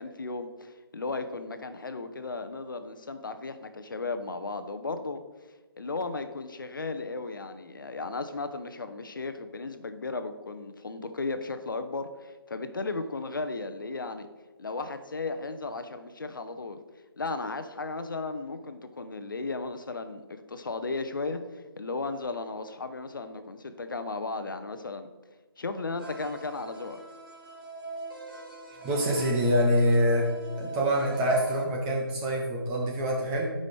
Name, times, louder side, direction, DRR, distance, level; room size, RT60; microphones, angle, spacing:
voice 1, 0.0-5.2 5.8-14.3 14.6-16.8 17.2-25.1 25.6-27.0, left 3 dB, 55° left, 9 dB, 0.7 m, -35 dB
sound 1, 26.0-31.6, right 2 dB, 60° right, 2.5 m, -43 dB
voice 2, 28.8-30.3 30.6-33.5, equal, 10° right, -2 dB, 0.4 m, -25 dB
9.5 x 5.1 x 3.4 m, 1.2 s
figure-of-eight pair, 155°, 13 cm